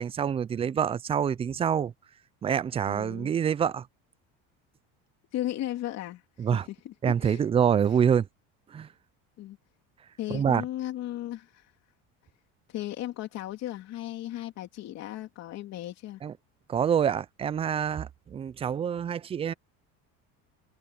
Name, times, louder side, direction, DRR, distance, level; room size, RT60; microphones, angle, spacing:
voice 1, 0.0-1.9 2.4-3.9 6.4-6.7 7.0-8.3 8.7-8.9 10.3-10.6 16.2-16.3 16.7-19.5, right 8 dB, 20° right, 0.3 m, -26 dB
voice 2, 2.9-3.3 5.3-7.4 9.4-9.6 10.2-11.7 12.7-16.2, left 13 dB, 50° left, 3.1 m, -36 dB
cardioid pair, 150°, 34 cm